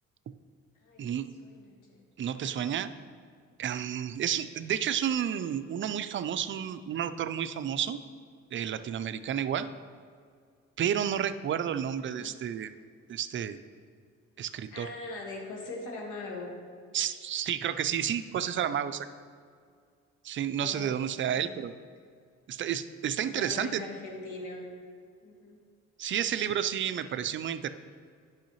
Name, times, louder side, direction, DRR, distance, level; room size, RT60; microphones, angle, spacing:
voice 1, 0.8-2.0 12.1-12.3 14.7-16.5 20.6-21.0 21.3-21.6 23.3-24.6 25.2-25.6, left 3 dB, 80° left, -1 dB, 1.6 m, -41 dB
voice 2, 2.2-2.9 3.6-8.0 8.5-9.7 10.8-12.7 13.1-13.6 14.4-14.9 16.9-19.1 20.2-21.7 22.5-23.8 26.0-27.7, right 9 dB, 40° right, 11 dB, 0.4 m, -31 dB
10.0 x 5.6 x 3.0 m, 2.1 s
cardioid pair, 90°, 30 cm